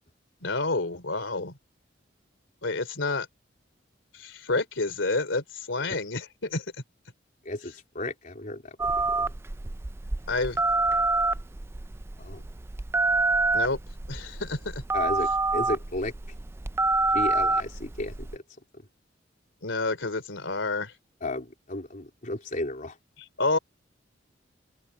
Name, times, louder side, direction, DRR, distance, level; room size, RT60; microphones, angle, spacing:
voice 1, 0.4-1.5 2.6-3.3 4.1-6.6 10.3-10.6 13.5-13.8 14.1-14.8 19.6-21.0 23.2-23.6, left 3 dB, 90° left, 3.1 m, -29 dB
voice 2, 7.5-9.3 12.2-12.4 14.9-16.1 17.1-18.4 21.2-23.0, left 2 dB, 45° left, 3.7 m, -34 dB
Telephone, 8.8-18.4, right 3 dB, 15° right, 0.3 m, -27 dB
open air
head